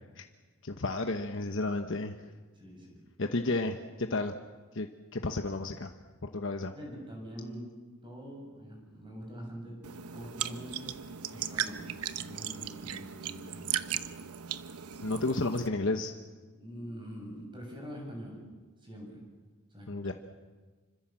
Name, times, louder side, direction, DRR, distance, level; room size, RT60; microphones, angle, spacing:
voice 1, 0.6-2.1 3.2-4.3 4.7-4.9 5.1-5.9 6.2-6.7 15.0-16.1 19.9-20.1, left 2 dB, 55° left, 5 dB, 1.1 m, -32 dB
voice 2, 2.5-3.0 6.7-7.7 8.0-9.8 10.1-11.0 11.3-11.8 12.2-14.0 14.8-15.0 16.5-18.4 18.8-19.2 19.7-20.1, equal, 20° right, 0 dB, 7.3 m, -44 dB
sound 1, 9.8-15.7, right 9 dB, 85° right, 1.0 m, -37 dB
27.0 x 25.0 x 7.5 m, 1.4 s
head